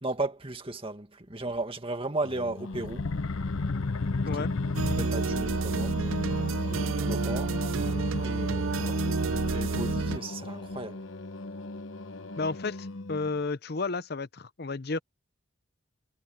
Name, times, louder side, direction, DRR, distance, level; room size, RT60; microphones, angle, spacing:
voice 1, 0.0-3.1 4.3-6.0 6.7-7.6 8.2-9.0 9.4-11.0, right 2 dB, 25° right, 2.0 m, -35 dB
Singing, 2.2-13.4, left 2 dB, 70° left, 1.0 m, -35 dB
sound 1, 2.7-5.5, left 4 dB, 90° left, 0.7 m, -32 dB
sound 2, 4.8-10.2, right 4 dB, 70° right, 0.6 m, -30 dB
voice 2, 12.4-15.0, left 3 dB, 50° left, 0.7 m, -32 dB
head